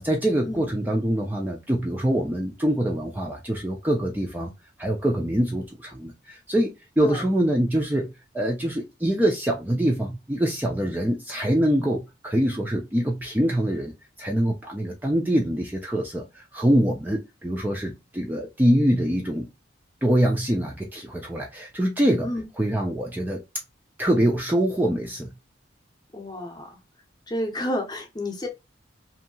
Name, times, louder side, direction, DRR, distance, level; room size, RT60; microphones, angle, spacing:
voice 1, 0.0-4.5 4.8-13.9 14.2-19.5 20.0-22.3 22.6-23.4 24.0-25.3, right 1 dB, 10° right, 0.4 m, -24 dB
voice 2, 26.1-26.8 27.3-28.5, left 1 dB, 20° left, 0.7 m, -30 dB
2.7 x 2.7 x 2.6 m
head